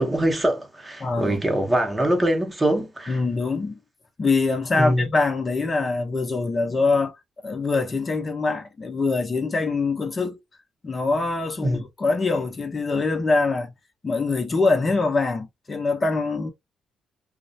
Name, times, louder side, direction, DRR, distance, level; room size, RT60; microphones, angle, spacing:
voice 1, 0.0-3.2 4.7-5.1 11.6-11.8, right 1 dB, 15° right, 0.7 m, -23 dB
voice 2, 1.0-1.4 3.1-3.8 4.2-7.1 7.4-10.4 10.8-13.7 14.0-16.5, left 3 dB, 30° left, 0.6 m, -24 dB
2.4 x 2.0 x 2.6 m
cardioid pair, 90°, 0 cm